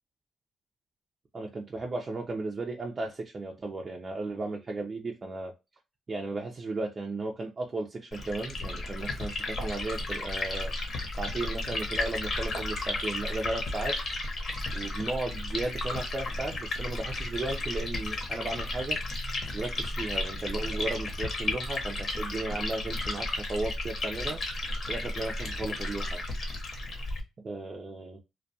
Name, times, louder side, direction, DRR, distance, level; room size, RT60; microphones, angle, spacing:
voice 1, 1.3-5.5 6.1-10.7 11.2-14.0 14.7-19.0 19.5-24.4 24.9-26.2 27.4-28.2, right 2 dB, 35° right, 0.4 m, -35 dB
Liquid, 8.1-27.2, left 2 dB, 50° left, 0.8 m, -33 dB
2.2 x 2.2 x 2.6 m
cardioid pair, 90°, 0 cm